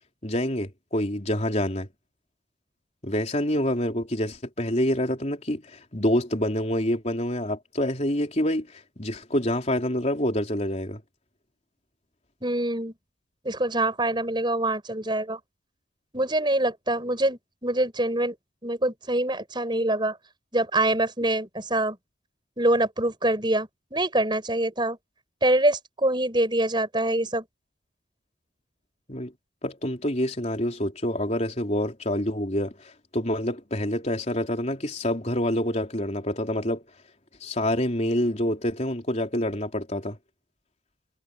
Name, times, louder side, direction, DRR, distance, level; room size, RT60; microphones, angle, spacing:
voice 1, 0.2-1.9 3.0-11.0 29.1-29.3 29.6-36.8 37.4-40.2, left 1 dB, 35° left, 3.9 m, -27 dB
voice 2, 12.4-12.9 13.4-15.4 16.1-18.4 18.6-20.2 20.5-22.0 22.6-25.0 25.4-27.4, right 1 dB, 25° right, 6.5 m, -25 dB
head